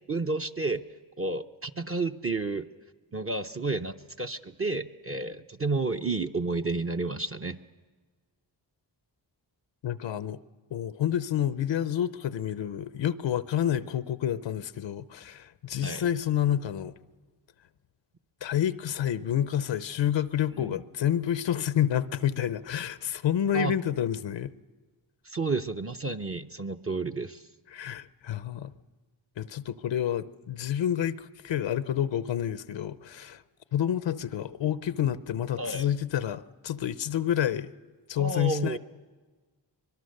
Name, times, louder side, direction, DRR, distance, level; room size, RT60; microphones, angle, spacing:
voice 1, 0.1-0.8 1.2-2.7 3.1-7.6 15.8-16.0 20.5-20.8 23.5-23.7 25.2-27.5 35.6-35.9 38.2-38.8, right 3 dB, 30° right, 5 dB, 0.7 m, -31 dB
voice 2, 9.8-10.4 10.7-16.9 18.4-24.5 27.7-28.7 29.4-33.4 33.7-37.7 38.1-38.8, left 10 dB, 85° left, 14 dB, 0.7 m, -29 dB
24.0 x 21.5 x 6.6 m, 1.4 s
cardioid pair, 75°, 43 cm